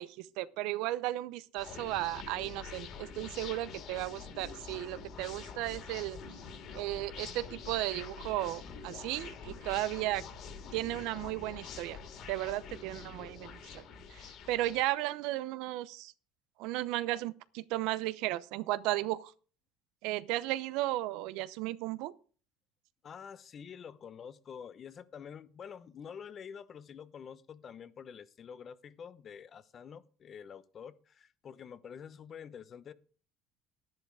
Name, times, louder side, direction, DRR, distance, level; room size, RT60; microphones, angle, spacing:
voice 1, 0.0-6.2 6.7-10.2 10.7-12.0 12.3-13.8 14.1-16.1 16.6-19.3 20.0-22.1, right 16 dB, 80° right, 0.7 m, -35 dB
sound 1, 1.6-14.8, left 6 dB, 55° left, 3.0 m, -46 dB
voice 2, 23.0-32.9, left 7 dB, 35° left, 0.8 m, -48 dB
11.0 x 10.5 x 4.8 m
cardioid pair, 130°, 0 cm